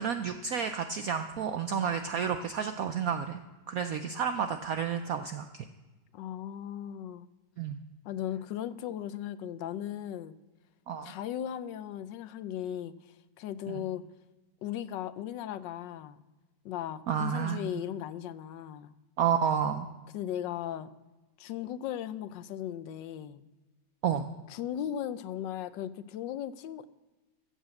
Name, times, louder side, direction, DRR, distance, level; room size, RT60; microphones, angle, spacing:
voice 1, 0.0-3.4 3.7-5.7 7.6-7.8 10.9-11.1 13.7-13.8 17.1-17.6 19.2-19.9 24.0-24.2, right 7 dB, 65° right, 8 dB, 0.9 m, -30 dB
voice 2, 6.1-7.3 8.0-10.4 11.0-12.9 13.4-14.0 14.6-16.2 16.6-18.9 20.1-20.9 21.4-23.4 24.5-26.9, left 10 dB, 80° left, 14 dB, 1.3 m, -37 dB
15.0 x 6.4 x 7.6 m, 1.1 s
omnidirectional pair, 2.0 m